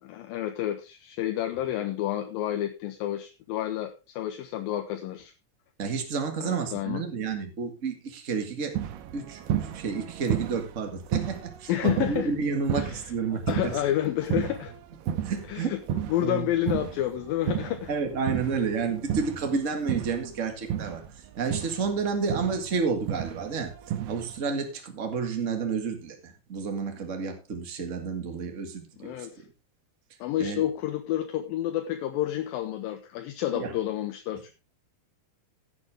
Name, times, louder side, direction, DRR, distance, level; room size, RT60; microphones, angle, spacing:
voice 1, 0.0-5.3 6.4-7.0 11.7-12.3 12.7-13.1 13.5-14.7 15.5-17.9 29.0-29.4 30.2-34.5, left 12 dB, 75° left, 7 dB, 2.4 m, -30 dB
voice 2, 5.8-8.8 9.1-13.8 15.0-15.8 16.2-16.5 17.9-21.0 21.4-23.7 24.0-29.5 30.4-30.6 33.5-33.7, right 5 dB, 35° right, 5 dB, 1.2 m, -30 dB
sound 1, 8.7-15.6 15.9-20.4 20.7-24.4, right 10 dB, 90° right, 3.0 m, -33 dB
15.5 x 8.2 x 3.5 m, 0.29 s
omnidirectional pair, 4.4 m